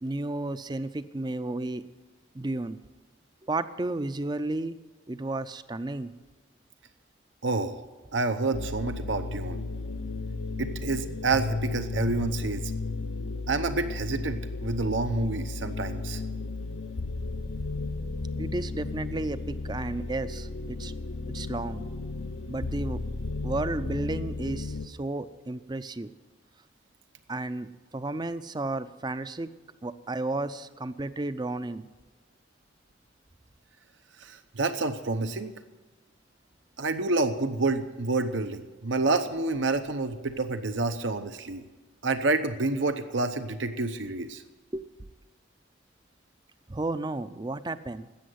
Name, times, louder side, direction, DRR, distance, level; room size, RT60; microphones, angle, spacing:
voice 1, 0.0-1.8 2.3-2.8 3.4-4.8 5.1-6.1 18.4-20.9 21.3-21.9 22.5-23.0 23.4-26.1 27.3-29.5 29.8-31.9 44.7-44.9 46.7-48.1, right 2 dB, 20° right, 13 dB, 0.5 m, -33 dB
voice 2, 7.4-7.8 8.1-9.6 10.6-12.7 13.5-16.2 34.2-35.5 36.8-41.6 42.0-44.4, right 3 dB, 75° right, 9 dB, 0.8 m, -28 dB
sound 1, 8.5-24.9, left 3 dB, 75° left, 0.8 m, -34 dB
13.0 x 8.8 x 9.4 m, 1.2 s
head